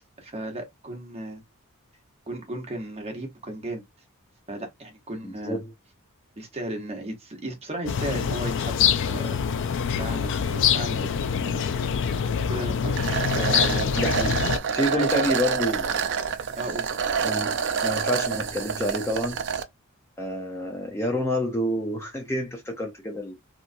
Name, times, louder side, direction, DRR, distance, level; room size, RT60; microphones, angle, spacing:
voice 1, 0.2-1.4 2.3-3.8 4.5-5.6 6.4-8.7 9.1-9.4 10.0-11.1 11.4-11.7 12.0-12.2 12.5-13.9 14.9-15.3 16.6-16.9, right 1 dB, 30° right, 0.9 m, -35 dB
voice 2, 5.2-5.7 13.9-14.4 14.7-16.0 17.2-19.4 20.2-23.3, left 1 dB, 10° left, 0.6 m, -28 dB
sound 1, 7.9-14.6, left 7 dB, 55° left, 0.3 m, -25 dB
sound 2, 13.0-19.6, right 6 dB, 55° right, 0.5 m, -27 dB
2.9 x 2.4 x 2.6 m
head